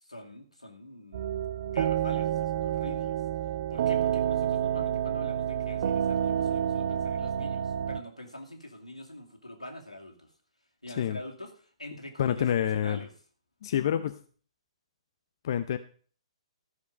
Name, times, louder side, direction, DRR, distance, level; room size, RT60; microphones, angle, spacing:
voice 1, 0.0-1.4 1.6-3.2 3.7-10.3 10.8-13.1, left 1 dB, 85° left, 2 dB, 2.5 m, -44 dB
sound 1, 1.1-8.0, right 9 dB, 45° right, 0.7 m, -29 dB
voice 2, 10.9-11.2 12.2-13.0 13.6-14.2 15.4-15.8, left 9 dB, 45° left, 10 dB, 0.6 m, -27 dB
14.0 x 6.4 x 5.2 m, 0.43 s
figure-of-eight pair, 125°, 3 cm